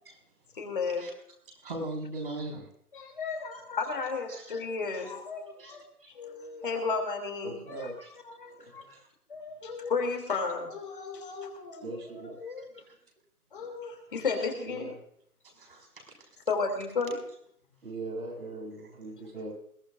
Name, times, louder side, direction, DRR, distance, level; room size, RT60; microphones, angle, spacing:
voice 1, 0.5-1.0 2.9-5.8 6.1-7.9 8.3-8.9 9.3-12.7 13.5-14.9 16.5-17.2, left 4 dB, 35° left, 3 dB, 3.0 m, -33 dB
voice 2, 1.5-2.7 3.5-3.6 4.3-4.6 4.9-5.1 5.6-6.1 8.0-8.1 8.6-9.1 9.7-9.8 12.4-13.0 15.5-16.3, right 2 dB, 35° right, 1 dB, 5.1 m, -41 dB
voice 3, 7.4-8.0 11.8-12.4 13.6-13.7 14.7-14.9 17.8-19.5, right 2 dB, 70° right, 0 dB, 7.2 m, -39 dB
21.5 x 17.5 x 2.6 m, 0.67 s
hypercardioid pair, 175°, 46 cm